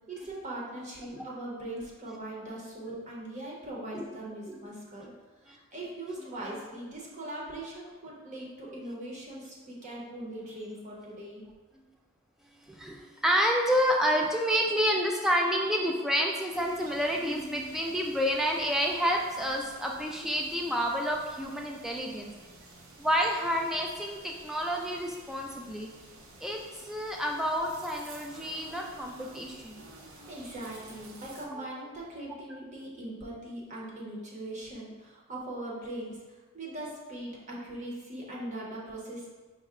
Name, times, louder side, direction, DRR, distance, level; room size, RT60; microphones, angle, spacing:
voice 1, 0.1-5.1 5.4-11.4 26.7-26.9 30.1-39.3, right 1 dB, 30° right, -4 dB, 0.7 m, -40 dB
voice 2, 12.7-22.3 23.0-25.9 26.4-26.6 26.9-29.9 31.5-31.6, equal, ahead, 0 dB, 0.3 m, -29 dB
sound 1, 16.5-31.5, right 2 dB, 70° right, 0.6 m, -51 dB
5.3 x 2.1 x 3.6 m, 1.3 s
head